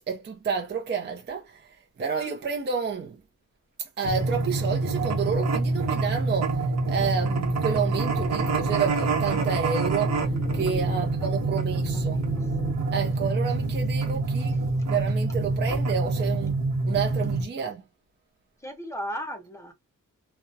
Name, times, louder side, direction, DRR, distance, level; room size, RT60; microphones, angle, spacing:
voice 1, 0.1-3.2 3.8-6.6 6.9-12.3 12.9-14.6 14.9-17.8, right 6 dB, 35° right, 0.4 m, -30 dB
sound 1, 4.0-17.4, right 3 dB, 55° right, 0.8 m, -26 dB
sound 2, 7.2-12.7, left 5 dB, 45° left, 0.8 m, -40 dB
voice 2, 10.9-12.5 14.1-14.2 14.5-14.6 18.6-19.7, equal, 10° left, 0.6 m, -38 dB
2.3 x 2.1 x 2.6 m
wide cardioid pair, 175°, 32 cm